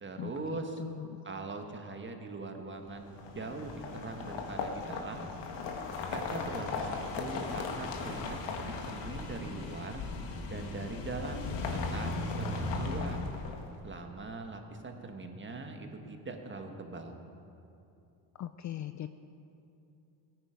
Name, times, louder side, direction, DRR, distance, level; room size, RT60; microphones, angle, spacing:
voice 1, 0.0-0.8 1.2-5.3 6.1-10.0 10.5-11.6 11.9-13.3 13.8-17.2, right 3 dB, 25° right, 4 dB, 1.5 m, -41 dB
voice 2, 0.8-1.3 18.4-19.1, left 11 dB, 40° left, 10 dB, 0.5 m, -39 dB
sound 1, 3.1-13.9, left 3 dB, 60° left, 1.8 m, -37 dB
17.0 x 9.6 x 5.2 m, 2.7 s
supercardioid pair, 85°, 47 cm